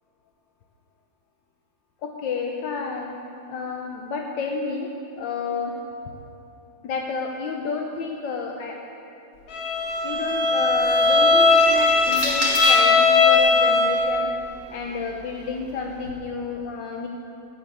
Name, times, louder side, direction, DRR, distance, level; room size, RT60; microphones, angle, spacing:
voice 1, 2.0-3.2 3.5-6.1 6.8-8.8 10.0-14.3 14.7-17.1, left 4 dB, 75° left, 1 dB, 1.5 m, -30 dB
Bowed string instrument, 9.5-14.2, left 3 dB, 55° left, 1.5 m, -18 dB
sound 1, 10.6-13.0 14.0-16.1, right 2 dB, 50° right, 2.0 m, -34 dB
10.5 x 7.7 x 8.4 m, 2.7 s
omnidirectional pair, 2.1 m